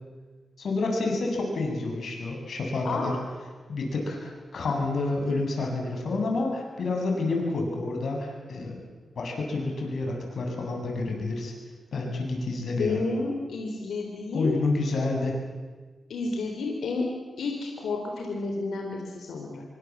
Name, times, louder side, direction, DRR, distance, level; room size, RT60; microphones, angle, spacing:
voice 1, 0.6-3.1 3.7-8.8 9.2-11.5 11.9-13.0 14.3-15.4, left 3 dB, 70° left, 1 dB, 7.8 m, -29 dB
voice 2, 2.8-3.2 12.8-14.6 16.1-17.1 17.4-19.6, left 3 dB, 90° left, 1 dB, 4.0 m, -30 dB
27.5 x 23.5 x 7.5 m, 1.4 s
cardioid pair, 80°, 0 cm